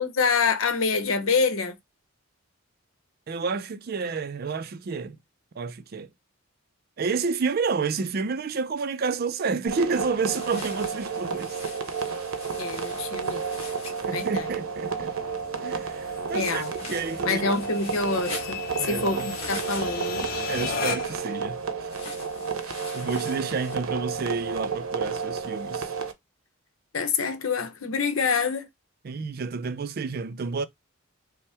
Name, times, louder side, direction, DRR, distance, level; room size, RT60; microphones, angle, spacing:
voice 1, 0.0-1.8 12.6-13.4 14.1-14.5 16.3-16.7 17.2-20.3 26.9-28.7, left 4 dB, 75° left, 0.8 m, -26 dB
voice 2, 3.3-5.2 5.6-6.1 7.0-11.6 14.0-15.1 15.6-16.6 16.9-17.5 18.8-19.3 20.5-21.9 22.9-25.9 29.0-30.7, right 4 dB, 45° right, 0.4 m, -30 dB
sound 1, 9.7-26.1, right 5 dB, 80° right, 0.7 m, -32 dB
sound 2, 10.2-14.3 16.4-20.3 21.9-23.8, left 3 dB, 30° left, 1.5 m, -43 dB
sound 3, 11.1-21.3, left 5 dB, 45° left, 0.7 m, -38 dB
5.5 x 2.1 x 3.4 m
head